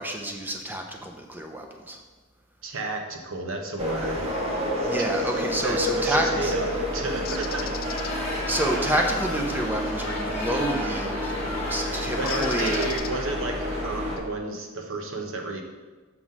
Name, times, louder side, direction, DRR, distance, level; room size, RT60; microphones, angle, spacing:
voice 1, 0.0-2.0 4.8-6.5 8.5-12.9, right 1 dB, 10° right, 2 dB, 0.6 m, -29 dB
voice 2, 2.6-4.3 5.0-5.1 5.6-6.7 6.9-7.8 12.2-15.6, right 2 dB, 80° right, 2 dB, 0.9 m, -32 dB
sound 1, 3.8-14.2, equal, 30° right, 1.1 m, -29 dB
Bird, 7.3-8.1 10.7-11.0 12.3-13.5, left 9 dB, 45° left, 0.4 m, -37 dB
sound 2, 7.8-13.0, left 1 dB, 30° left, 1.3 m, -34 dB
6.1 x 3.7 x 5.4 m, 1.3 s
head